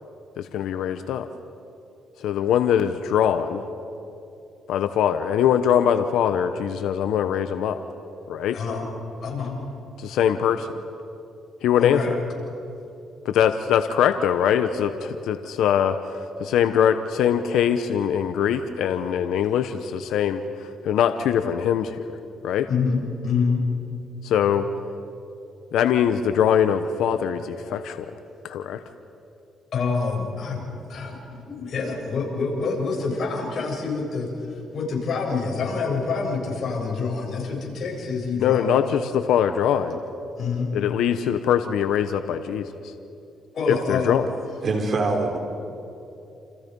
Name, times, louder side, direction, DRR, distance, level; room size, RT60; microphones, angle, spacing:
voice 1, 0.4-1.3 2.2-3.6 4.7-7.8 8.3-8.6 10.0-10.7 11.6-12.0 13.2-22.1 22.4-22.7 24.2-24.7 25.7-28.2 28.4-28.8 38.4-40.0 40.7-42.9 43.7-44.2, left 9 dB, 80° left, 9 dB, 1.0 m, -22 dB
voice 2, 8.5-8.8 9.2-9.5 11.8-12.1 22.7-23.6 29.7-34.3 34.7-38.8 40.4-40.7 43.5-44.1, left 4 dB, 55° left, -1 dB, 7.8 m, -27 dB
voice 3, 44.6-45.4, right 3 dB, 50° right, 3 dB, 4.3 m, -23 dB
29.5 x 28.5 x 5.5 m, 2.8 s
cardioid pair, 90°, 0 cm